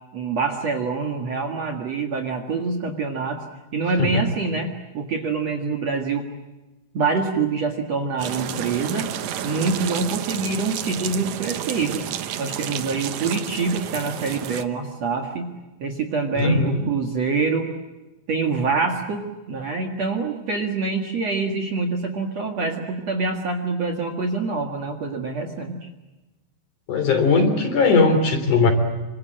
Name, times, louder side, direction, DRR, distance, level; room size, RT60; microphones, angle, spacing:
voice 1, 0.1-3.4 3.7-6.3 6.9-9.1 9.4-12.1 12.4-15.5 15.8-17.7 18.3-25.9, right 4 dB, 50° right, 3 dB, 2.4 m, -25 dB
sound 1, 8.2-14.6, right 10 dB, 85° right, 1.6 m, -31 dB
voice 2, 16.3-16.9 26.9-28.7, left 3 dB, 50° left, 7 dB, 4.5 m, -19 dB
27.5 x 26.0 x 7.8 m, 1.1 s
omnidirectional pair, 5.0 m